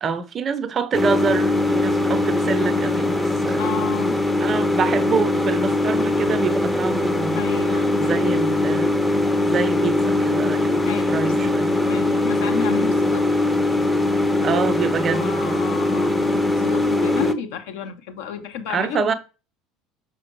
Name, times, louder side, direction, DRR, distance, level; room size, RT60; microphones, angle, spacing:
voice 1, 0.0-3.6 4.4-7.4 8.0-11.7 14.4-15.7 18.7-19.1, right 5 dB, 35° right, 0.7 m, -26 dB
sound 1, 0.9-17.3, left 2 dB, 10° left, 0.7 m, -21 dB
voice 2, 3.6-4.2 7.3-8.3 10.7-11.2 11.9-13.2 15.1-19.2, left 7 dB, 60° left, 1.1 m, -31 dB
6.3 x 5.9 x 2.8 m
figure-of-eight pair, 65°, 0 cm